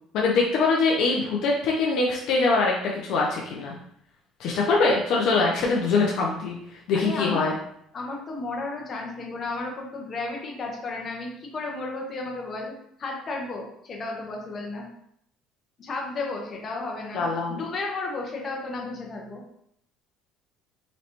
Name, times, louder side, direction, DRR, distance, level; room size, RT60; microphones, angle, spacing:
voice 1, 0.1-3.7 4.4-7.5 17.1-17.6, left 3 dB, 65° left, -2 dB, 0.7 m, -23 dB
voice 2, 6.9-7.6 7.9-12.7 13.0-14.9 15.8-19.4, left 3 dB, 35° left, -1 dB, 1.1 m, -33 dB
4.1 x 3.1 x 2.9 m, 0.71 s
cardioid pair, 120°, 0 cm